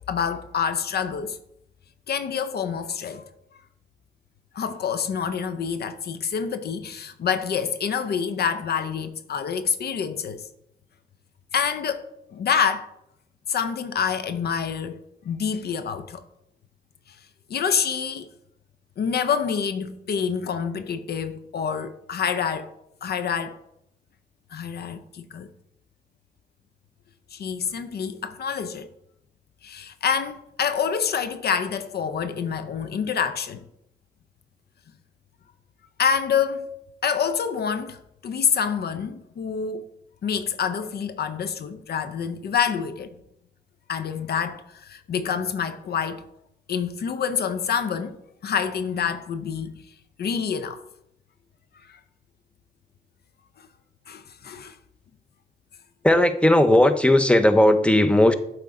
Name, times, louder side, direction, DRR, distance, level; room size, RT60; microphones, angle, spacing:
voice 1, 0.1-1.4 2.1-3.3 4.5-10.5 11.5-12.9 13.5-15.0 15.3-16.2 17.5-18.3 19.0-22.7 23.0-23.6 24.5-25.5 27.3-28.9 29.6-33.6 36.0-36.7 37.0-39.9 40.2-43.1 43.9-46.2 46.7-48.2 48.4-49.7 50.2-50.8 51.9-52.0 54.1-54.7, left 7 dB, 70° left, 0.5 m, -27 dB
voice 2, 56.0-58.3, left 1 dB, 5° left, 0.6 m, -17 dB
7.6 x 4.5 x 3.6 m
cardioid pair, 65°, 17 cm